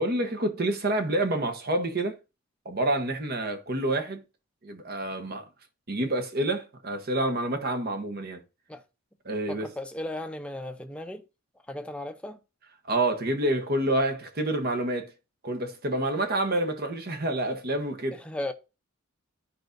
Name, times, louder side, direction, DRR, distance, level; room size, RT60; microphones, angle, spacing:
voice 1, 0.0-2.2 2.6-4.2 4.6-5.4 5.9-8.4 9.2-9.7 12.9-15.1 15.4-18.2, right 1 dB, 45° right, 1.1 m, -28 dB
voice 2, 9.5-11.2 11.7-12.4 18.2-18.5, left 1 dB, 5° left, 0.6 m, -35 dB
14.0 x 5.1 x 2.6 m
head